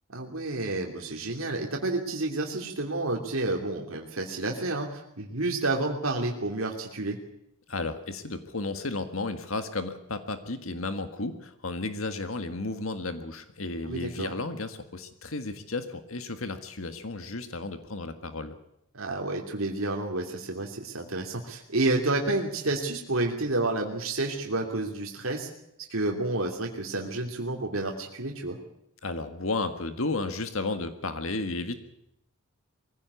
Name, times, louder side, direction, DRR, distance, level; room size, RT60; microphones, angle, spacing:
voice 1, 0.1-7.2 13.9-14.3 18.9-25.5 25.9-28.6, right 2 dB, 80° right, 1 dB, 2.9 m, -30 dB
voice 2, 7.7-18.6 29.0-31.8, left 3 dB, 80° left, 9 dB, 1.7 m, -33 dB
23.0 x 16.5 x 8.3 m, 0.82 s
head